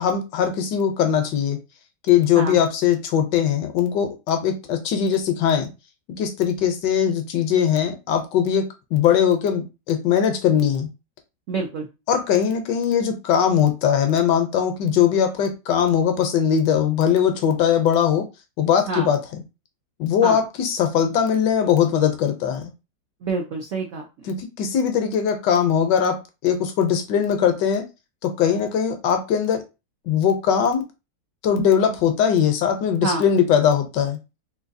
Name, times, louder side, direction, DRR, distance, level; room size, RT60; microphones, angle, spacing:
voice 1, 0.0-1.6 2.1-5.7 6.2-10.9 12.1-18.2 18.6-19.4 20.0-22.7 24.3-27.8 28.2-29.6 30.1-30.9 31.4-34.2, left 8 dB, 75° left, 7 dB, 1.2 m, -20 dB
voice 2, 11.5-11.9 18.9-19.1 20.2-20.4 23.2-24.1 33.0-33.3, right 3 dB, 75° right, 1 dB, 0.7 m, -26 dB
3.8 x 2.6 x 2.6 m, 0.27 s
omnidirectional pair, 2.1 m